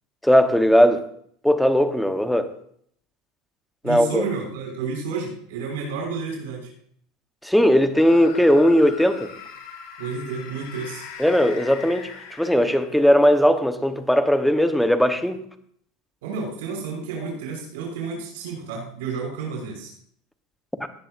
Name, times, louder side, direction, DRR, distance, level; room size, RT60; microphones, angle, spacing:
voice 1, 0.2-1.0 1.4-2.5 3.8-4.2 7.4-9.3 11.2-12.1 12.4-15.4 20.8-20.9, equal, ahead, 8 dB, 0.9 m, -18 dB
voice 2, 3.8-6.7 10.0-11.0 16.2-19.9, right 5 dB, 80° right, -2 dB, 5.8 m, -31 dB
sound 1, 7.9-13.1, left 6 dB, 70° left, 2.8 m, -40 dB
18.0 x 11.0 x 2.5 m, 0.63 s
supercardioid pair, 125°, 0 cm